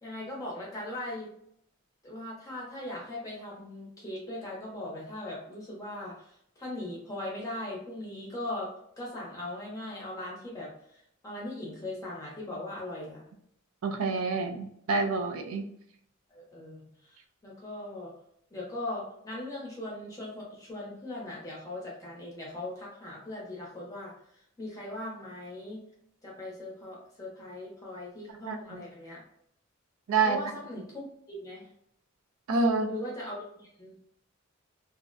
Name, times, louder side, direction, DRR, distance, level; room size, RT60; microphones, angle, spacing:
voice 1, 0.0-1.3 2.0-8.7 9.0-13.2 16.3-18.1 18.5-25.9 26.2-29.2 30.2-31.7 32.9-34.0, left 1 dB, 15° left, -4 dB, 0.6 m, -39 dB
voice 2, 13.8-15.6 28.5-28.8 30.1-30.4 32.5-32.9, right 4 dB, 90° right, 6 dB, 0.4 m, -27 dB
2.4 x 2.1 x 2.4 m, 0.71 s
head